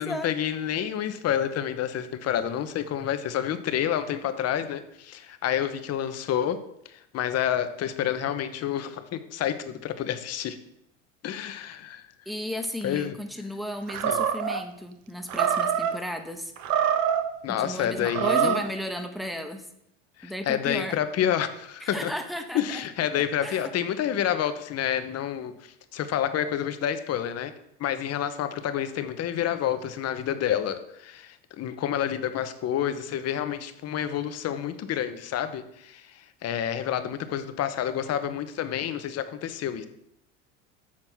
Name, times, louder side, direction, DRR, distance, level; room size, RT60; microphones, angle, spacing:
voice 1, 0.0-10.6 11.2-12.1 12.8-13.2 14.1-14.2 17.4-18.6 20.2-22.1 22.5-27.5 27.8-39.9, left 10 dB, 45° left, 10 dB, 0.9 m, -29 dB
voice 2, 12.3-16.5 17.5-19.7 20.2-21.0 21.8-22.8 23.4-23.7, left 1 dB, ahead, 6 dB, 1.0 m, -34 dB
Animal, 13.9-14.6 15.3-15.9 16.6-17.3 18.0-18.7, right 8 dB, 50° right, 0.9 m, -25 dB
7.4 x 4.3 x 6.1 m, 0.79 s
hypercardioid pair, 85°, 36 cm